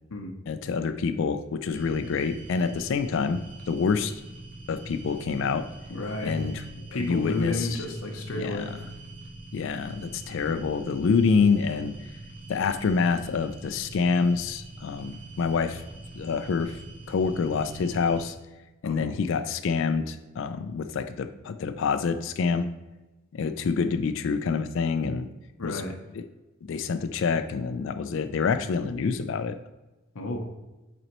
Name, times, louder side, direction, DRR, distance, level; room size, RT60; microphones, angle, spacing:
voice 1, 0.5-3.4 3.7-4.1 4.7-5.6 6.2-6.6 6.9-7.8 8.3-8.6 9.5-11.9 12.5-15.8 16.1-16.8 17.1-18.3 18.8-22.7 23.3-25.3 25.6-25.8 26.7-29.6, left 5 dB, 65° left, 10 dB, 0.3 m, -27 dB
sound 1, 1.7-18.3, right 2 dB, 45° right, 1.3 m, -44 dB
voice 2, 5.9-6.6 6.9-8.7 11.7-11.8 18.8-19.1 25.6-26.0 30.1-30.5, left 2 dB, 80° left, 2 dB, 0.7 m, -32 dB
7.9 x 4.2 x 3.0 m, 1.1 s
head